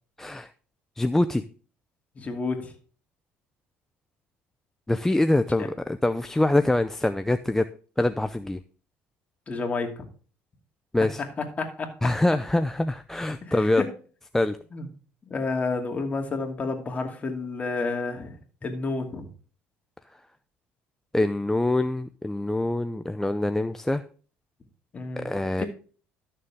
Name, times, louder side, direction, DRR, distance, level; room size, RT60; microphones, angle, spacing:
voice 1, 0.2-0.5 1.0-1.4 4.9-7.7 8.0-8.6 10.9-11.2 12.0-13.8 14.3-14.6 21.1-24.0 25.2-25.6, left 2 dB, 10° left, 10 dB, 0.5 m, -24 dB
voice 2, 2.2-2.7 5.6-5.7 9.5-10.1 11.6-11.9 13.5-13.9 14.7-14.9 15.3-18.4 18.6-19.3 24.9-25.3 25.6-25.7, left 3 dB, 30° left, 3 dB, 2.6 m, -30 dB
13.0 x 6.8 x 3.6 m, 0.41 s
supercardioid pair, 95°, 5 cm